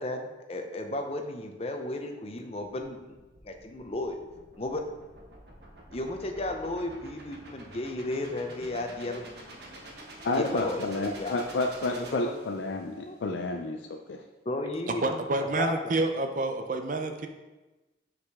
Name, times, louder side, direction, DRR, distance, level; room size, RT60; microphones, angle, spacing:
voice 1, 0.0-3.2 3.4-4.2 4.6-4.9 5.9-9.2 10.3-11.3 12.0-12.4 13.0-13.2 14.4-15.2 15.6-15.8, left 1 dB, 35° left, 4 dB, 0.6 m, -34 dB
sound 1, 3.0-12.9, right 1 dB, 65° right, 1.1 m, -48 dB
voice 2, 10.2-14.2, left 2 dB, 80° left, 3 dB, 0.4 m, -30 dB
voice 3, 14.9-17.3, right 2 dB, 45° right, 6 dB, 0.5 m, -28 dB
6.9 x 4.9 x 3.5 m, 1.1 s
head